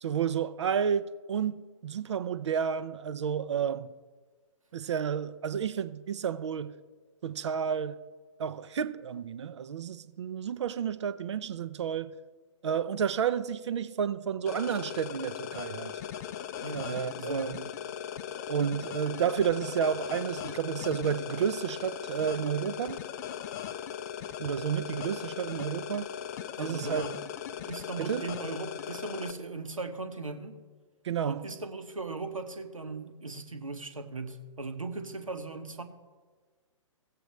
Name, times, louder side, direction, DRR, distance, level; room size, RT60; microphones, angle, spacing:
voice 1, 0.0-3.9 4.7-6.7 7.2-8.0 8.4-12.1 12.6-15.9 16.7-17.6 18.5-23.0 24.4-26.1 26.6-27.0 28.0-28.3 31.0-31.4, right 8 dB, 60° right, 0.6 m, -31 dB
sound 1, 14.5-29.3, left 9 dB, 30° left, 0.4 m, -38 dB
voice 2, 16.6-17.5 26.6-27.2 27.7-30.6 31.2-35.8, right 3 dB, 85° right, 1.1 m, -38 dB
16.5 x 7.8 x 3.1 m
figure-of-eight pair, 120°, 17 cm